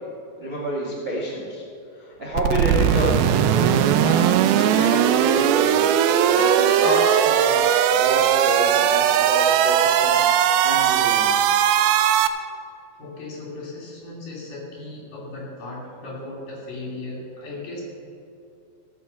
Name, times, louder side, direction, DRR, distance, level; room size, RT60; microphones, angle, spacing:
voice 1, 0.4-1.6 1.9-7.6 7.9-11.6, equal, 25° right, -6 dB, 1.5 m, -29 dB
sound 1, 2.3-12.3, right 9 dB, 85° right, 2.5 m, -19 dB
voice 2, 12.9-17.8, left 2 dB, 60° left, -3 dB, 4.2 m, -36 dB
16.0 x 6.5 x 7.0 m, 2.6 s
omnidirectional pair, 4.4 m